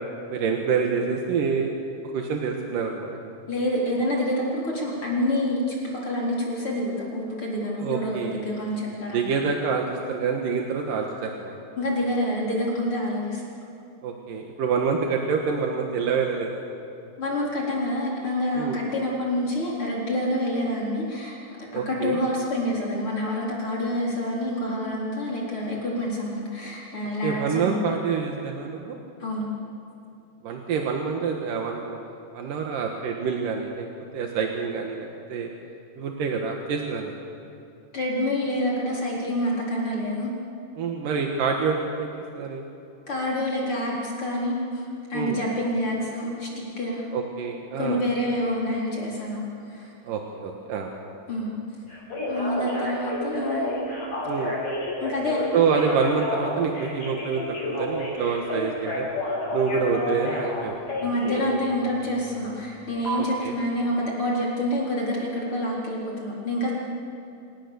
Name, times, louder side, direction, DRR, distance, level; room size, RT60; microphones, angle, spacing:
voice 1, 0.3-1.7 2.1-3.1 7.8-8.5 9.1-11.6 14.0-16.6 18.5-18.8 21.7-22.2 27.2-29.0 30.4-32.0 32.3-33.9 34.1-35.5 36.0-37.1 40.8-42.6 45.1-45.4 47.1-48.0 50.1-50.9 54.3-54.6 55.5-59.1 59.5-60.8 63.2-63.5, right 5 dB, 80° right, 2 dB, 3.1 m, -27 dB
voice 2, 3.5-9.3 11.8-13.4 17.2-27.8 29.2-29.5 37.9-40.3 43.1-44.8 45.1-47.0 47.8-49.9 51.3-51.5 52.3-53.7 54.4-54.5 55.0-55.4 61.0-66.7, left 1 dB, 40° left, -4 dB, 4.8 m, -27 dB
Telephone, 51.9-61.5 63.0-63.2, left 1 dB, 55° left, 8.1 m, -30 dB
27.5 x 18.5 x 7.0 m, 2.7 s
omnidirectional pair, 3.8 m